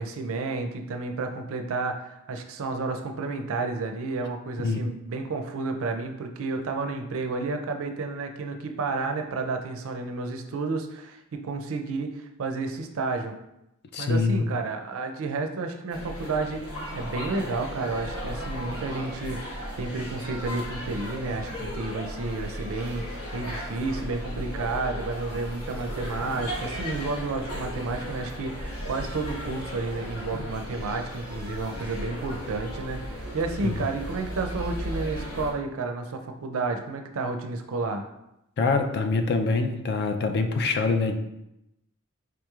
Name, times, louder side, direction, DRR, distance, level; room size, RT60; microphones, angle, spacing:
voice 1, 0.0-13.3 14.0-38.0, right 3 dB, 65° right, 5 dB, 0.4 m, -31 dB
voice 2, 13.9-14.5 30.3-30.4 33.6-33.8 38.6-41.2, left 3 dB, 50° left, 6 dB, 0.4 m, -25 dB
sound 1, 15.9-35.5, equal, 85° left, 1.1 m, -36 dB
4.9 x 3.0 x 2.3 m, 0.86 s
head